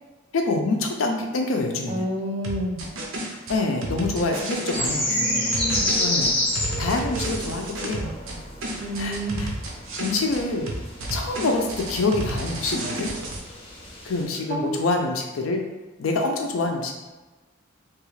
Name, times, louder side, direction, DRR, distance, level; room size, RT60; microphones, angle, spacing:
voice 1, 0.3-2.1 3.5-5.5 6.0-6.4 6.8-8.4 9.0-9.5 10.0-10.7 11.1-13.1 14.1-15.6 16.0-16.9, left 3 dB, 85° left, 3 dB, 0.5 m, -26 dB
voice 2, 1.9-2.8 5.1-5.9 8.8-9.5 14.5-14.8, equal, 35° right, -1 dB, 0.6 m, -29 dB
sound 1, 2.4-4.9 5.5-8.4 8.6-10.4 10.7-13.4, right 2 dB, 75° right, 0.6 m, -31 dB
sound 2, 4.7-14.2, left 1 dB, 30° left, 0.8 m, -30 dB
3.0 x 2.4 x 3.1 m, 1.2 s
head